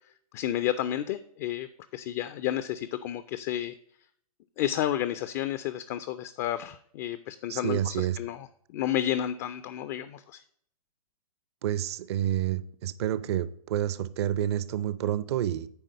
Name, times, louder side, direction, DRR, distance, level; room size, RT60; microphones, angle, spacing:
voice 1, 0.3-3.7 4.6-10.4, left 11 dB, 25° left, 0.3 m, -31 dB
voice 2, 7.5-8.2 11.6-15.7, right 11 dB, 45° right, 0.5 m, -29 dB
9.0 x 3.8 x 6.4 m
figure-of-eight pair, 120°, 19 cm